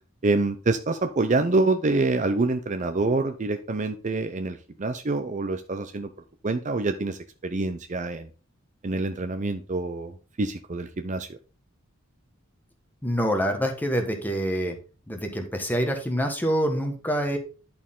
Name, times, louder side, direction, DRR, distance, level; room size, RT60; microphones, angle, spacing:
voice 1, 0.2-6.1 6.4-8.3 8.8-11.3, right 3 dB, 35° right, 8 dB, 0.5 m, -26 dB
voice 2, 13.0-14.8 15.1-17.4, equal, 10° left, 4 dB, 1.3 m, -26 dB
11.0 x 4.4 x 3.7 m, 0.36 s
head